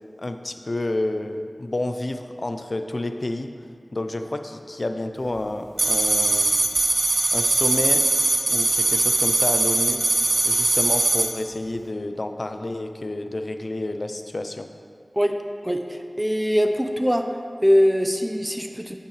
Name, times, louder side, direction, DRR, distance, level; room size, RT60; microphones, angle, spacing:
voice 1, 0.2-3.5 3.9-6.6 7.3-8.0 8.5-10.0 10.4-14.7, left 2 dB, 60° left, 7 dB, 0.4 m, -29 dB
sound 1, 5.8-11.3, right 2 dB, 60° right, 0.5 m, -21 dB
voice 2, 15.6-17.2 17.6-19.0, equal, 10° right, 5 dB, 0.5 m, -22 dB
10.0 x 5.6 x 3.0 m, 2.2 s
wide cardioid pair, 45°, 0 cm